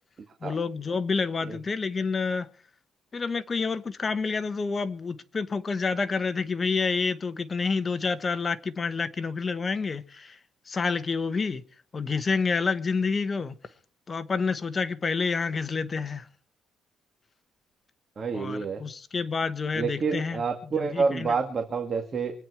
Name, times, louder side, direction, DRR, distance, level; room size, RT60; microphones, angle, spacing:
voice 1, 0.4-2.5 3.1-10.4 10.7-11.6 11.9-13.6 14.1-16.2 18.3-20.4 20.8-21.3, left 4 dB, 30° left, 1.1 m, -28 dB
voice 2, 18.2-18.8 19.8-22.3, right 5 dB, 35° right, 1.9 m, -28 dB
25.0 x 9.1 x 4.8 m
cardioid pair, 125°, 0 cm